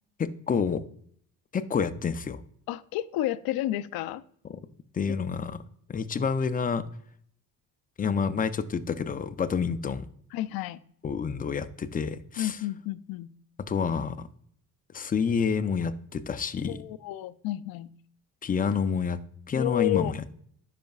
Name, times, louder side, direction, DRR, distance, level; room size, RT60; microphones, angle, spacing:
voice 1, 0.2-0.8 1.5-2.4 4.5-4.6 4.9-5.6 5.9-6.9 8.0-10.1 11.0-12.6 13.7-14.3 14.9-16.8 18.4-19.2 19.5-20.3, left 6 dB, 25° left, 12 dB, 0.4 m, -28 dB
voice 2, 2.7-4.2 5.1-5.3 10.3-10.8 12.4-13.3 16.7-17.9 19.5-20.2, left 15 dB, 80° left, 13 dB, 0.5 m, -31 dB
10.5 x 5.1 x 2.3 m, 0.63 s
cardioid pair, 105°, 36 cm